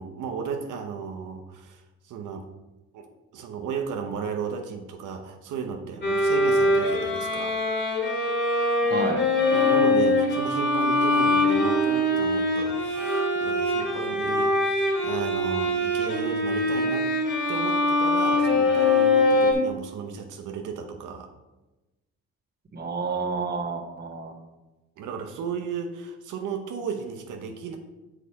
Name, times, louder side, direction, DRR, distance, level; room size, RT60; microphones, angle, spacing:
voice 1, 0.0-2.5 2.9-3.1 3.3-7.6 9.5-17.1 17.5-21.3 25.0-27.8, right 6 dB, 80° right, 3 dB, 0.9 m, -34 dB
Bowed string instrument, 6.0-19.5, left 2 dB, 40° left, 2.0 m, -23 dB
voice 2, 8.8-9.2 22.7-24.3, right 4 dB, 30° right, 2 dB, 1.3 m, -30 dB
6.6 x 4.9 x 5.7 m, 1.1 s
cardioid pair, 90°, 30 cm